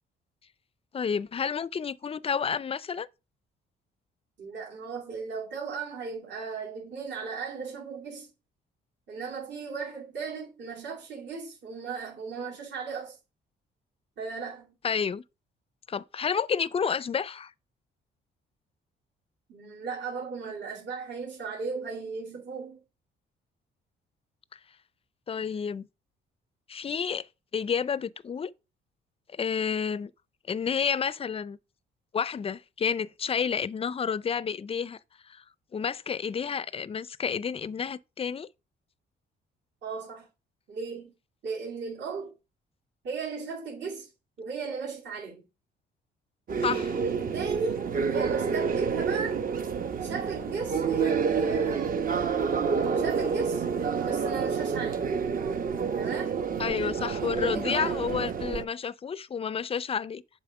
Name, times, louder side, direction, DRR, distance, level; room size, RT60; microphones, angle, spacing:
voice 1, 0.9-3.1 14.8-15.2 15.9-17.5 25.3-25.9 26.7-27.3 27.5-28.5 29.3-30.1 30.5-31.6 32.1-35.0 35.3-35.4 35.7-38.5 46.6-46.9 56.6-60.2, left 6 dB, 30° left, 0.4 m, -30 dB
voice 2, 4.4-8.3 9.1-13.2 14.2-14.8 19.5-22.8 39.8-40.3 40.7-41.1 41.4-42.3 43.0-44.1 44.4-45.4 46.7-49.4 50.0-51.9 52.9-53.7 54.0-55.1 56.0-56.3 57.3-58.0, right 5 dB, 65° right, 2.7 m, -36 dB
sound 1, 46.5-58.7, right 6 dB, 45° right, 0.9 m, -29 dB
7.1 x 4.1 x 5.8 m
cardioid pair, 90°, 20 cm